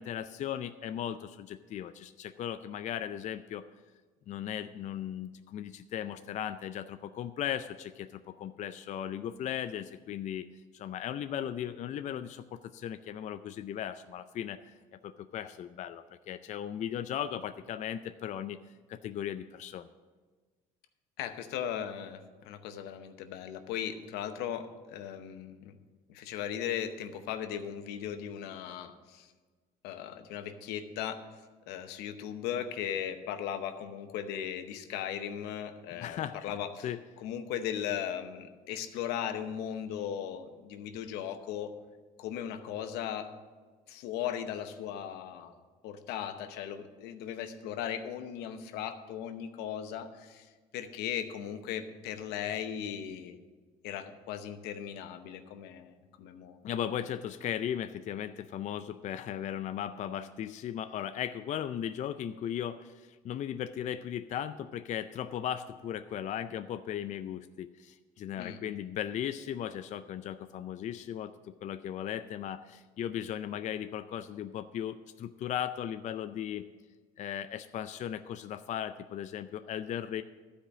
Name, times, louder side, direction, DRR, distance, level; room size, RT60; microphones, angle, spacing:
voice 1, 0.0-3.7 4.3-10.5 10.7-18.6 18.9-19.9 35.9-37.0 56.6-76.7 77.2-80.2, left 10 dB, 45° left, 10 dB, 0.4 m, -37 dB
voice 2, 21.2-25.8 26.1-29.3 29.8-31.2 31.7-36.9 37.2-41.7 42.2-43.3 43.9-45.5 45.8-50.5 50.7-53.4 53.8-56.6 68.4-68.6, left 9 dB, 85° left, 8 dB, 0.9 m, -37 dB
12.0 x 5.1 x 7.3 m, 1.4 s
cardioid pair, 95°, 17 cm